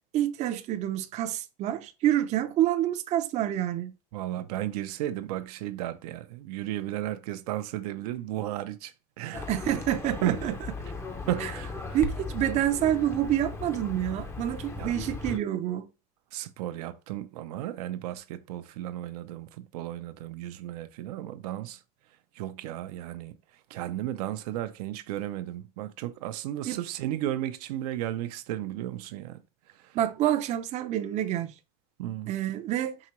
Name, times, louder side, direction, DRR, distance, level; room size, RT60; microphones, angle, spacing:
voice 1, 0.1-3.9 9.5-10.5 11.4-11.5 11.9-15.9 26.7-26.8 29.9-31.5 32.3-33.0, right 12 dB, 35° right, 0.5 m, -27 dB
voice 2, 4.1-9.5 10.2-10.4 11.3-12.0 14.8-14.9 16.3-21.8 22.3-23.3 23.7-29.4 29.7-30.0 32.0-32.3, right 13 dB, 85° right, 0.6 m, -34 dB
Livestock farm animals working animals, 9.3-15.4, left 4 dB, 15° left, 0.5 m, -37 dB
4.7 x 2.9 x 3.0 m
supercardioid pair, 135°, 20 cm